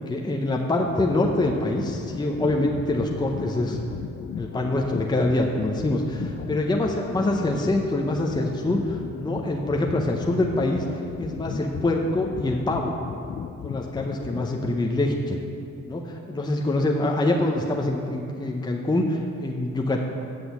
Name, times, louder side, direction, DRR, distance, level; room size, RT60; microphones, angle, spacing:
voice 1, 0.0-3.8 4.3-10.8 11.2-12.9 13.6-15.4 15.9-20.0, left 2 dB, 15° left, 0 dB, 0.8 m, -25 dB
sound 1, 0.8-15.0, left 7 dB, 35° left, 0.4 m, -36 dB
8.1 x 6.2 x 7.1 m, 2.5 s
cardioid pair, 90°, 30 cm